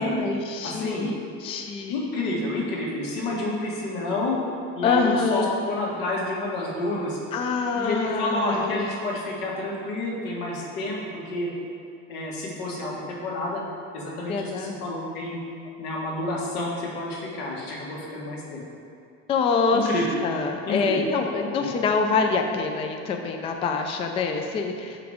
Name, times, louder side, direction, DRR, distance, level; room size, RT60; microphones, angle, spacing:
voice 1, 0.0-1.9 4.8-5.5 7.3-8.9 14.3-14.8 19.3-19.9 20.2-25.1, left 4 dB, 20° left, 4 dB, 0.3 m, -25 dB
voice 2, 0.6-1.1 1.9-4.3 4.8-7.2 7.7-11.5 12.1-13.6 13.9-15.4 15.8-18.6 19.7-20.1 20.7-21.0 21.6-21.7, left 2 dB, 90° left, -3 dB, 1.8 m, -29 dB
6.0 x 5.8 x 4.9 m, 2.5 s
cardioid pair, 155°, 30 cm